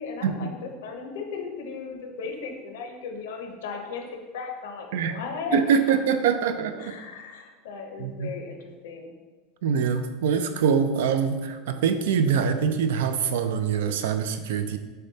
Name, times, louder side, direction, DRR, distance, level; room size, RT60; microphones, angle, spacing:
voice 1, 0.0-4.0 4.3-5.6 6.8-9.1, left 5 dB, 85° left, 3 dB, 0.6 m, -36 dB
voice 2, 5.5-7.0 8.0-8.3 9.6-14.8, right 7 dB, 85° right, 9 dB, 0.3 m, -24 dB
6.4 x 2.2 x 2.7 m, 1.3 s
supercardioid pair, 140°, 0 cm